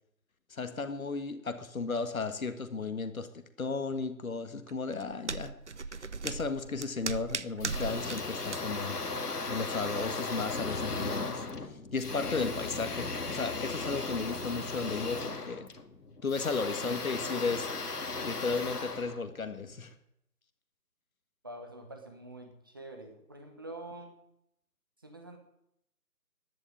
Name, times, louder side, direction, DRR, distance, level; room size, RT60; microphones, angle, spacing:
voice 1, 0.5-5.6 5.9-9.0 9.5-11.4 11.9-15.7 16.2-17.7 18.2-19.9, left 4 dB, 60° left, 9 dB, 1.7 m, -34 dB
sound 1, 4.7-8.2 8.5-8.6, right 4 dB, 50° right, 0.6 m, -37 dB
sound 2, 7.6-19.8, left 3 dB, 75° left, 2.2 m, -36 dB
voice 2, 21.4-24.2 25.0-25.4, right 1 dB, 15° right, 4 dB, 1.1 m, -46 dB
12.0 x 10.5 x 9.2 m, 0.76 s
figure-of-eight pair, 165°, 47 cm